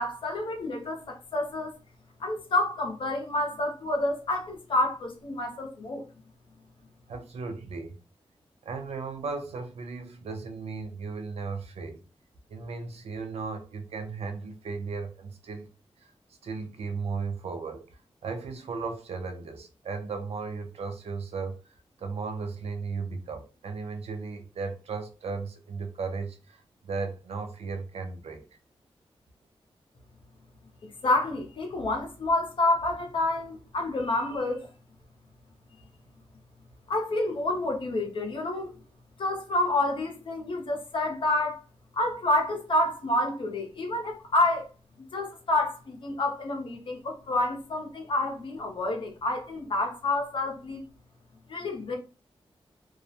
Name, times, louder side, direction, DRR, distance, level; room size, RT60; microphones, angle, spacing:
voice 1, 0.0-1.7 2.2-6.1 31.0-34.7 36.9-38.7 39.2-41.6 41.9-44.7 45.1-50.8 51.5-52.0, left 2 dB, 55° left, 0.6 m, -28 dB
voice 2, 7.1-8.0 8.6-12.0 12.5-15.7 16.0-16.1 16.4-17.9 18.2-21.6 22.0-28.5, right 4 dB, 90° right, 0.4 m, -36 dB
2.3 x 2.0 x 2.7 m
wide cardioid pair, 160°, 10 cm